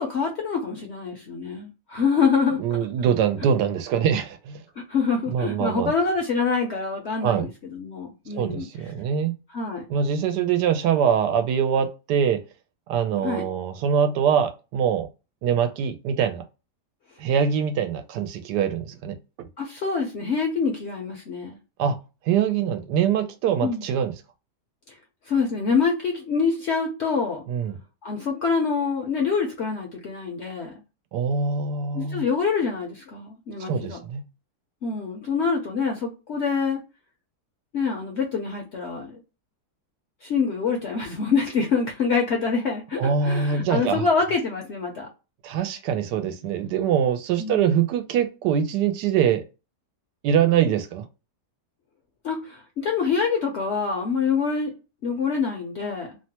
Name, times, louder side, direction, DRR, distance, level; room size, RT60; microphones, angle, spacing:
voice 1, 0.0-2.8 4.8-8.7 9.5-9.9 13.2-13.4 19.6-21.6 23.6-23.8 25.3-27.4 28.0-30.7 31.9-34.0 34.8-36.8 37.7-39.2 40.2-45.1 47.4-47.6 52.2-54.7 55.0-56.2, left 5 dB, 60° left, 0.7 m, -25 dB
voice 2, 2.6-4.6 5.3-5.9 7.2-7.5 8.3-9.3 9.9-12.4 12.9-15.1 15.4-16.4 17.2-19.5 21.8-22.0 22.2-24.1 27.5-27.8 31.1-32.2 33.6-34.2 43.0-44.0 45.4-49.4 50.2-51.1, right 8 dB, 90° right, 1.2 m, -23 dB
3.0 x 2.1 x 2.7 m
omnidirectional pair, 1.8 m